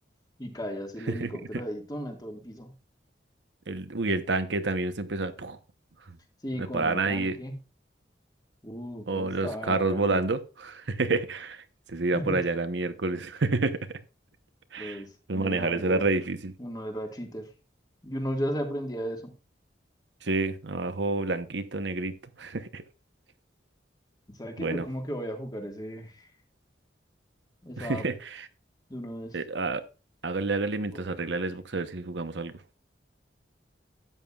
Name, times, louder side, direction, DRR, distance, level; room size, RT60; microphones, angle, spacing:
voice 1, 0.4-2.7 6.4-7.6 8.6-10.2 12.1-12.4 14.8-16.0 16.6-17.5 18.0-19.3 24.3-26.3 27.6-28.1 28.9-29.4 30.9-31.3, equal, 20° left, 1.8 m, -36 dB
voice 2, 1.2-1.6 3.7-5.6 6.6-7.4 9.1-14.0 14.7-15.0 15.3-16.5 20.2-22.8 24.6-24.8 27.8-28.5 29.3-29.8 30.2-32.5, right 3 dB, 75° right, 0.9 m, -29 dB
13.0 x 9.0 x 2.4 m
head